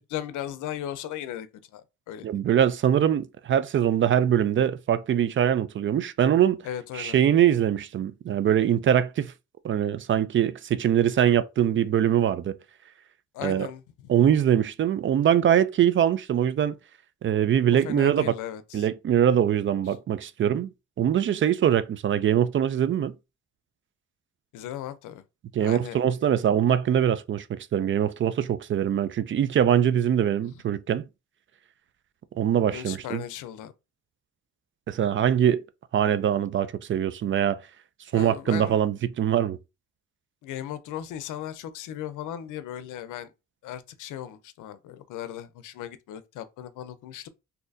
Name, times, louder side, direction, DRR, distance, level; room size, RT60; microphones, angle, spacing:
voice 1, 0.1-1.5 1.7-2.3 6.6-7.2 13.3-14.2 17.8-18.9 24.5-25.2 25.6-26.0 32.7-33.7 38.1-38.8 40.4-43.3 43.6-47.3, left 11 dB, 80° left, 0.6 m, -37 dB
voice 2, 2.2-6.6 6.9-9.3 9.6-12.6 13.4-13.7 14.1-16.7 17.2-18.3 18.7-20.7 21.0-23.1 25.5-31.0 32.4-33.2 34.9-35.6 35.9-37.6 38.1-39.6, right 9 dB, 40° right, 0.4 m, -23 dB
4.0 x 2.7 x 2.6 m
cardioid pair, 90°, 30 cm